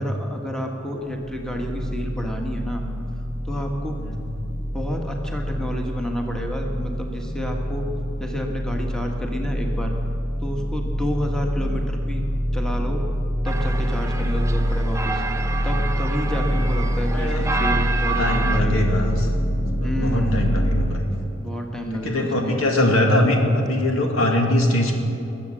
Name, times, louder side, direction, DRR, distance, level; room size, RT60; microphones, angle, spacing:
voice 1, 0.0-2.8 3.4-4.0 4.7-7.9 8.2-9.9 10.4-12.2 12.5-13.0 13.4-15.2 15.6-18.9 19.8-20.5 21.4-22.6, equal, 5° left, 1 dB, 1.3 m, -29 dB
sound 1, 1.0-20.9, equal, 40° left, 1.6 m, -26 dB
sound 2, 13.5-18.6, right 4 dB, 15° right, 0.6 m, -29 dB
voice 2, 17.1-17.5 18.2-19.3 19.8-21.1 21.9-24.9, left 1 dB, 80° left, 2 dB, 2.1 m, -22 dB
22.0 x 7.5 x 7.5 m, 2.8 s
head